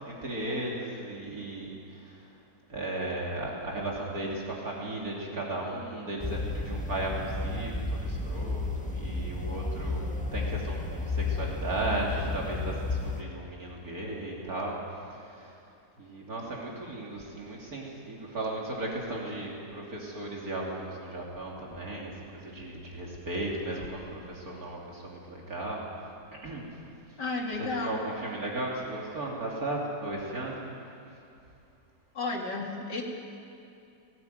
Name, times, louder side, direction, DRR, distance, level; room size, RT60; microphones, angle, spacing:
voice 1, 0.0-2.3 2.7-14.8 15.1-15.6 16.0-25.8 26.4-26.7 27.6-30.6, right 2 dB, 55° right, -3 dB, 3.3 m, -36 dB
sound 1, 6.2-13.2, left 3 dB, 5° left, 0.9 m, -32 dB
voice 2, 27.2-28.0 32.1-33.0, left 3 dB, 75° left, 0 dB, 3.1 m, -32 dB
18.0 x 18.0 x 9.3 m, 2.7 s
omnidirectional pair, 1.8 m